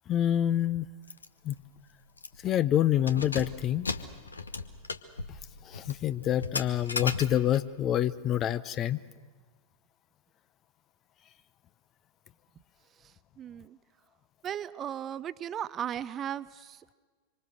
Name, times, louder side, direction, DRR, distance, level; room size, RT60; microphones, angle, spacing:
voice 1, 0.1-0.9 1.4-1.5 2.4-3.9 5.7-9.0, left 11 dB, 30° left, 15 dB, 0.7 m, -27 dB
Keys jangling, 1.1-1.3 1.6-1.7 2.2-2.5 2.9-7.7, left 3 dB, 75° left, 1.0 m, -37 dB
voice 2, 13.0-13.8 14.4-16.9, right 9 dB, 25° right, 16 dB, 0.6 m, -37 dB
25.5 x 25.0 x 6.4 m, 1.4 s
figure-of-eight pair, 90°, 0 cm